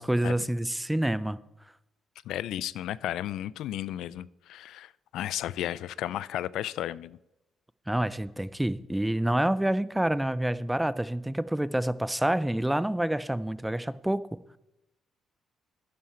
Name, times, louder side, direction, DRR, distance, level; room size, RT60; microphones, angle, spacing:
voice 1, 0.0-1.4 7.9-14.3, right 1 dB, 5° right, 0.5 m, -27 dB
voice 2, 2.3-7.2, left 12 dB, 85° left, 0.3 m, -34 dB
11.5 x 9.7 x 4.4 m
cardioid pair, 90°, 0 cm